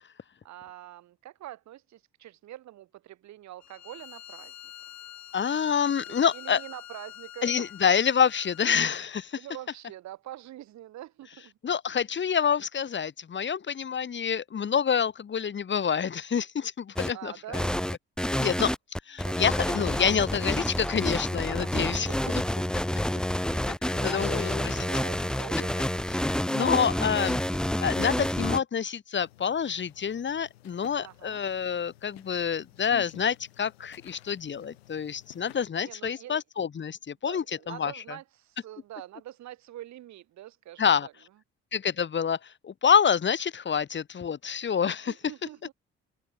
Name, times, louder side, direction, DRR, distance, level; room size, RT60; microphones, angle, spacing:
voice 1, 0.4-4.5 4.9-5.0 6.0-7.7 9.3-11.6 17.1-17.8 19.2-19.4 21.6-22.5 23.3-26.4 31.0-31.4 35.8-36.4 37.2-41.1 44.8-45.7, right 14 dB, 65° right, 8.0 m, -45 dB
Bowed string instrument, 3.6-9.0, left 12 dB, 65° left, 5.8 m, -46 dB
voice 2, 5.3-6.6 7.4-9.4 11.6-17.6 18.4-18.7 19.1-22.1 23.7-24.8 26.5-27.4 27.8-37.9 40.8-41.1 41.7-45.1, left 7 dB, 40° left, 1.3 m, -27 dB
sound 1, 17.0-17.1 17.5-28.6, left 1 dB, 5° left, 0.7 m, -28 dB
sound 2, 29.1-35.7, left 15 dB, 90° left, 7.2 m, -52 dB
open air
hypercardioid pair, 50°, 30 cm